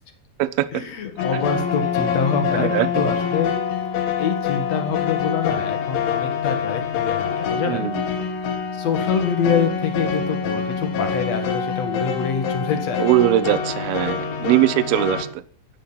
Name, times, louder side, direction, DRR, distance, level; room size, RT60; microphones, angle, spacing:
voice 1, 0.7-3.5 4.2-7.9 8.7-13.1, left 6 dB, 55° left, 6 dB, 2.1 m, -25 dB
sound 1, 1.2-15.2, left 7 dB, 80° left, 4.2 m, -25 dB
voice 2, 2.5-3.0 7.7-8.1 13.0-15.4, right 14 dB, 75° right, 12 dB, 2.3 m, -21 dB
11.5 x 9.8 x 7.0 m, 0.44 s
omnidirectional pair, 5.3 m